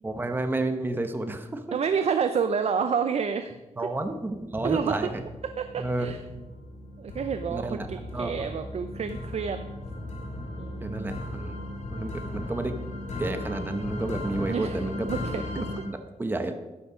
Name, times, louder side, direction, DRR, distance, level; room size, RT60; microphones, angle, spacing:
voice 1, 0.0-1.8 3.8-5.2 5.8-6.1 7.5-7.9 8.1-8.3 10.8-11.6 11.9-12.7 13.2-15.1 15.9-16.6, right 2 dB, 15° right, 7 dB, 0.9 m, -31 dB
voice 2, 1.7-3.6 4.6-5.0 5.4-6.2 7.0-9.6 10.6-11.2 14.5-14.8 15.1-15.6, right 6 dB, 60° right, 9 dB, 0.6 m, -29 dB
sound 1, 4.1-4.6 5.1-15.8, left 1 dB, 85° left, 3.1 m, -36 dB
12.5 x 9.8 x 5.0 m, 1.1 s
wide cardioid pair, 135°, 12 cm